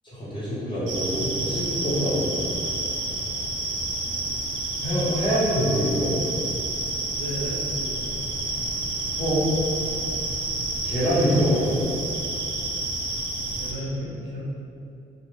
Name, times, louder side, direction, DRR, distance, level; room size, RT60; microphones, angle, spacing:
voice 1, 0.0-2.4 4.8-6.1 9.2-9.4 10.8-11.8, equal, 25° left, -9 dB, 1.1 m, -24 dB
sound 1, 0.9-13.7, right 2 dB, 75° right, 0.5 m, -29 dB
voice 2, 7.1-8.2 13.6-14.4, equal, 55° right, -6 dB, 0.8 m, -33 dB
2.4 x 2.2 x 3.2 m, 2.5 s
cardioid pair, 90°, 20 cm